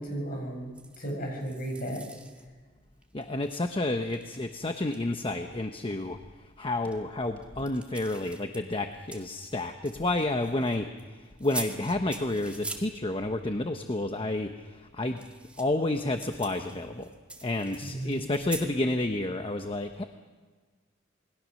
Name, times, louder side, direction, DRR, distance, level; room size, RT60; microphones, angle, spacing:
voice 1, 0.0-2.1 17.8-18.3, right 1 dB, 45° left, 1 dB, 7.8 m, -35 dB
sound 1, 0.7-1.1 1.4-2.5 3.0-3.6 4.0-5.0 6.8-6.9 7.4-11.0 11.4-12.9 15.0-18.7, right 2 dB, 5° right, 2.0 m, -43 dB
voice 2, 3.1-15.2 15.6-17.1 17.4-20.0, left 2 dB, 25° left, 6 dB, 1.0 m, -30 dB
28.0 x 21.5 x 6.5 m, 1.4 s
head